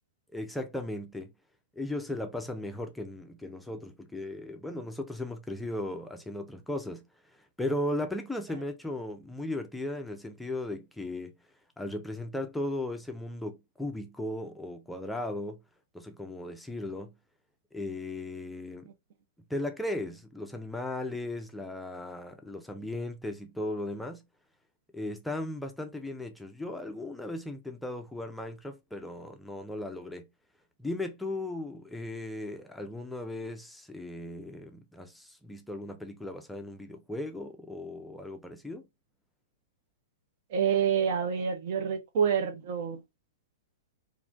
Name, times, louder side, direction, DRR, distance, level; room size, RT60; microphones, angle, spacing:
voice 1, 0.3-1.3 1.8-7.1 7.6-11.3 11.8-15.6 15.9-17.1 17.7-18.9 19.5-24.2 24.9-30.3 30.8-38.8, left 1 dB, 5° left, 0.4 m, -36 dB
voice 2, 40.5-43.0, right 7 dB, 55° right, 0.6 m, -27 dB
3.0 x 2.5 x 2.4 m
hypercardioid pair, 110°, 0 cm